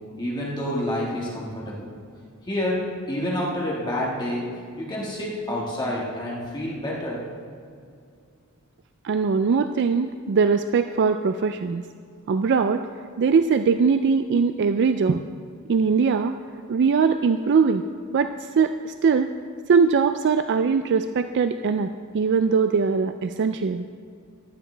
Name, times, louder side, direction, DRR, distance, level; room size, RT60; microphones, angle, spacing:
voice 1, 0.2-1.9 2.4-4.5 4.8-7.2, left 1 dB, 20° left, -4 dB, 1.7 m, -28 dB
voice 2, 9.0-11.8 12.3-12.8 13.2-15.2 15.7-16.3 16.7-17.8 18.1-19.3 19.7-21.9 22.1-23.9, right 5 dB, 55° right, 9 dB, 0.4 m, -21 dB
15.0 x 12.0 x 3.3 m, 2.3 s
head